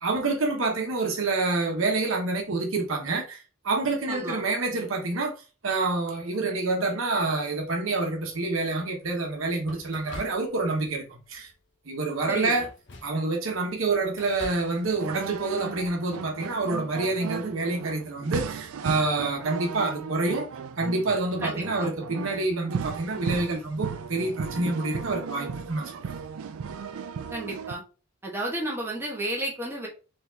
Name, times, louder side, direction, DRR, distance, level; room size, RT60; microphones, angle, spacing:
voice 1, 0.0-3.4 3.6-5.3 5.6-11.5 11.9-12.7 13.0-20.5 20.8-26.2, right 3 dB, 70° right, 1.0 m, -27 dB
voice 2, 4.1-4.4 12.3-12.5 21.4-21.9 27.3-27.8 28.2-29.9, right 1 dB, 10° right, 1.2 m, -32 dB
sound 1, 8.3-8.7 9.6-10.9 11.2-11.6 12.2-13.3 13.7-14.8, left 2 dB, 55° left, 0.8 m, -45 dB
sound 2, 14.2-27.7, right 6 dB, 85° right, 0.4 m, -36 dB
4.0 x 3.5 x 2.7 m
head